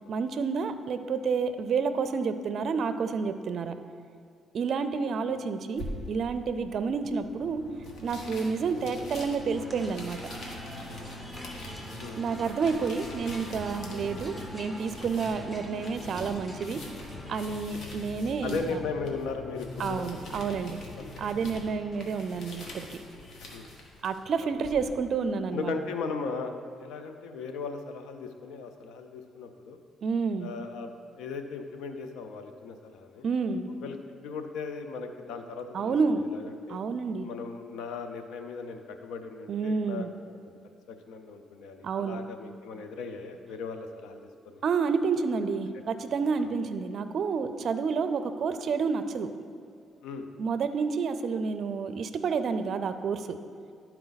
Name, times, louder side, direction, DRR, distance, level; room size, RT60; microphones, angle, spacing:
voice 1, 0.1-3.8 4.5-7.6 8.0-10.3 12.2-16.8 17.3-18.8 19.8-20.8 21.2-23.0 24.0-25.7 30.0-30.5 33.2-33.7 35.7-36.3 36.7-37.3 39.5-40.1 41.8-42.2 44.6-49.3 50.4-53.4, right 5 dB, 60° right, 10 dB, 0.4 m, -29 dB
sound 1, 5.8-24.9, left 1 dB, 65° left, 1.3 m, -46 dB
sound 2, 7.2-23.6, left 2 dB, 40° left, 1.0 m, -44 dB
sound 3, 9.5-17.5, equal, 10° left, 1.3 m, -45 dB
voice 2, 12.0-12.4 17.5-17.6 18.4-20.0 20.3-20.5 21.0-21.2 21.5-21.6 23.5-23.8 24.4-24.7 25.5-29.8 30.4-30.9 31.1-33.2 33.8-34.0 34.2-36.8 37.2-40.1 40.9-44.6 46.4-46.5 50.0-50.3, left 4 dB, 90° left, 7 dB, 0.6 m, -38 dB
11.5 x 4.5 x 4.0 m, 2.3 s
cardioid pair, 90°, 0 cm